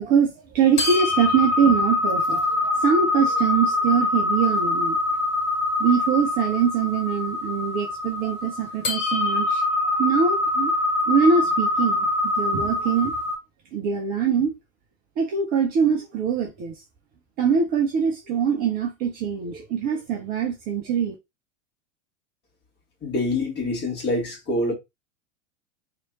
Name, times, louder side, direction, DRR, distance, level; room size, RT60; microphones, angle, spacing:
voice 1, 0.0-5.0 5.8-9.6 10.0-10.7 11.1-13.2 13.7-14.5 15.2-16.8 17.4-21.1, right 6 dB, 25° right, 0.4 m, -23 dB
sound 1, 0.8-13.4, left 2 dB, 65° left, 1.2 m, -24 dB
voice 2, 23.0-24.7, left 2 dB, 25° left, 1.5 m, -25 dB
3.0 x 2.5 x 2.9 m
figure-of-eight pair, 90°, 40 cm